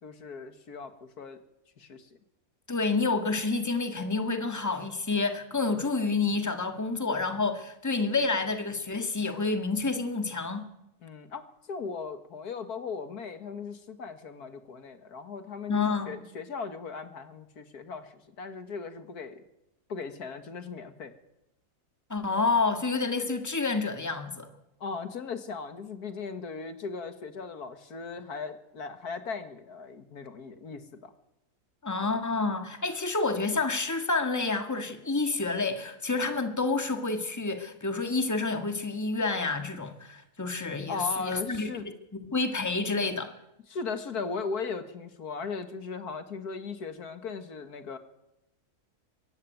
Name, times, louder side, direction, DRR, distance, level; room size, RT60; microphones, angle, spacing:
voice 1, 0.0-1.4 1.8-2.1 11.0-19.4 19.9-21.1 24.8-31.1 40.9-41.9 43.7-48.0, left 4 dB, 75° left, 2.1 m, -38 dB
voice 2, 2.7-10.6 15.7-16.2 22.1-24.5 31.8-41.7 42.1-43.3, left 3 dB, 10° left, 1.8 m, -29 dB
23.5 x 16.0 x 9.3 m
omnidirectional pair, 1.7 m